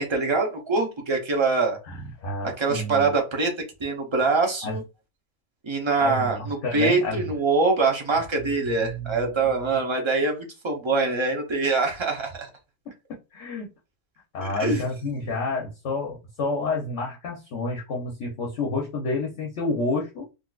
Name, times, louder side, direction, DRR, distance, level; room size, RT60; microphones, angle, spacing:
voice 1, 0.0-1.8 2.4-4.8 5.6-12.5 14.4-14.8, right 3 dB, 30° right, 0.6 m, -24 dB
voice 2, 1.9-3.1 4.6-4.8 6.0-7.3 8.6-9.3 13.3-13.7 14.3-20.2, left 2 dB, 55° left, 1.0 m, -29 dB
3.9 x 2.5 x 2.4 m
omnidirectional pair, 1.6 m